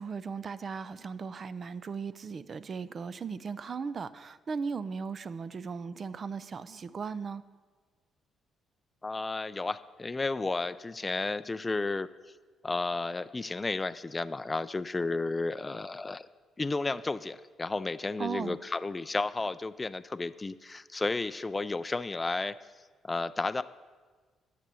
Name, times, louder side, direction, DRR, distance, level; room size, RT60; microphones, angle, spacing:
voice 1, 0.0-7.4 18.2-18.6, right 5 dB, 45° right, 15 dB, 0.5 m, -37 dB
voice 2, 9.0-12.1 12.6-16.3 16.6-22.5 23.0-23.6, left 3 dB, 25° left, 13 dB, 0.3 m, -32 dB
10.0 x 6.8 x 6.9 m, 1.4 s
cardioid pair, 90°, 0 cm